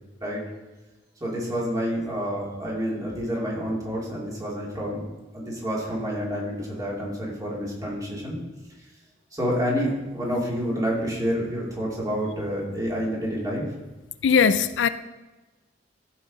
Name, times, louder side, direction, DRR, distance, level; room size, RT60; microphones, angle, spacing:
voice 1, 1.2-5.1 5.3-8.4 9.3-13.7, equal, 20° right, 2.6 m, -28 dB
voice 2, 14.2-14.9, left 6 dB, 85° left, 0.4 m, -19 dB
13.5 x 5.6 x 4.1 m
head